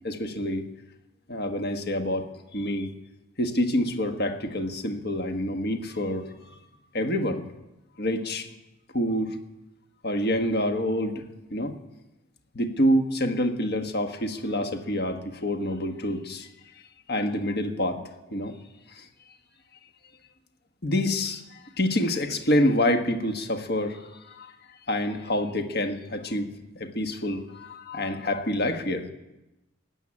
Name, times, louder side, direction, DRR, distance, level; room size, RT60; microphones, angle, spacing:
voice 1, 0.0-0.7 1.3-2.3 2.5-2.9 3.4-6.3 6.9-7.4 8.0-8.5 8.9-9.4 10.0-11.2 11.5-11.7 12.5-16.5 17.1-18.0 18.3-18.5 18.9-19.1 20.8-24.5 24.9-26.5 26.7-29.0, left 1 dB, 50° left, 5 dB, 1.5 m, -27 dB
16.5 x 7.5 x 9.8 m, 0.99 s
head